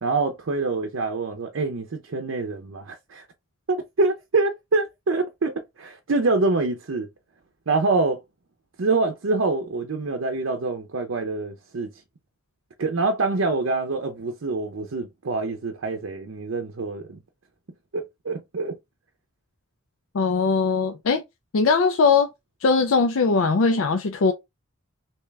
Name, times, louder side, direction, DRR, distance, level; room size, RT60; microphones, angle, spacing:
voice 1, 0.0-3.3 3.7-7.1 7.7-8.2 8.8-11.9 12.8-17.2 17.9-18.8, right 3 dB, 70° right, 0.6 m, -25 dB
voice 2, 20.1-21.2 21.5-22.3 22.6-24.3, left 4 dB, 85° left, 0.5 m, -20 dB
3.4 x 2.9 x 3.2 m
head